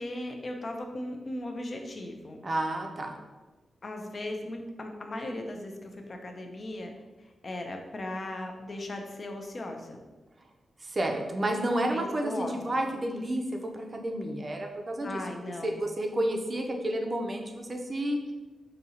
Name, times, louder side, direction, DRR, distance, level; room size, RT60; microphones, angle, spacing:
voice 1, 0.0-2.4 3.8-6.9 7.2-10.0 11.9-12.5 15.0-15.8, left 1 dB, 35° left, 3 dB, 0.5 m, -37 dB
voice 2, 2.4-3.2 10.8-15.2 15.6-18.2, right 1 dB, 30° right, 3 dB, 0.5 m, -30 dB
5.2 x 2.7 x 2.8 m, 1.2 s
wide cardioid pair, 140°, 0 cm